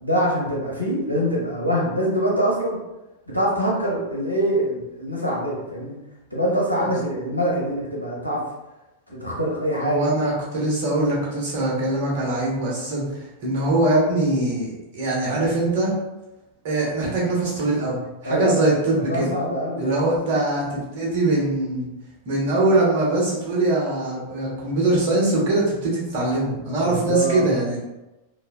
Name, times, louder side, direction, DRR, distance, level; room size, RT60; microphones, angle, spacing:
voice 1, 0.0-2.8 3.3-6.0 6.3-8.4 9.1-10.0 18.2-18.6 18.9-20.0 26.8-27.4, equal, 85° right, -4 dB, 0.8 m, -24 dB
voice 2, 9.8-15.9 16.6-19.3 19.8-21.9 22.3-27.8, right 2 dB, 50° right, -4 dB, 0.9 m, -22 dB
3.0 x 2.1 x 2.3 m, 0.99 s
figure-of-eight pair, 90°, 0 cm